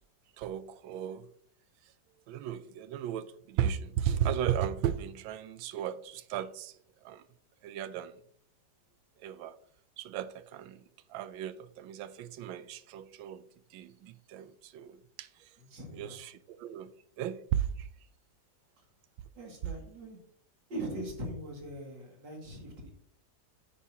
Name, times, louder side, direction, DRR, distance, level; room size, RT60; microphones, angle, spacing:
voice 1, 0.4-1.3 2.3-6.7 7.0-7.2 7.6-8.1 9.2-9.6 10.0-10.8 11.1-13.4 13.7-15.3 15.9-16.9 17.2-17.9, right 10 dB, 90° right, 1.4 m, -35 dB
voice 2, 15.6-16.2 19.3-20.2 20.7-22.9, right 1 dB, 65° right, 2.9 m, -41 dB
9.3 x 8.4 x 2.8 m
omnidirectional pair, 2.1 m